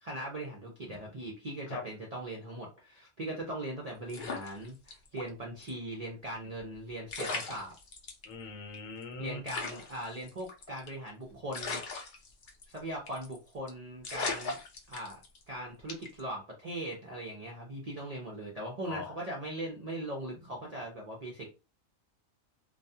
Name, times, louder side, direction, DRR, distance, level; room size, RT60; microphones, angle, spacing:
voice 1, 0.0-7.7 9.2-11.8 12.7-14.6 14.9-15.2 15.5-21.5, right 1 dB, 55° right, -2 dB, 0.4 m, -40 dB
sound 1, 4.1-5.3 5.6-5.7 6.7-6.8 7.1-8.2 8.7-8.8 9.0-9.1 9.5-11.0 11.5-12.8 13.1-13.4 13.7-13.8 14.0-15.4 15.9-16.2, left 3 dB, 55° left, 0.6 m, -38 dB
voice 2, 8.3-9.4 18.8-19.1, left 3 dB, 80° left, 4 dB, 1.1 m, -40 dB
2.3 x 2.2 x 2.6 m, 0.30 s
omnidirectional pair, 1.4 m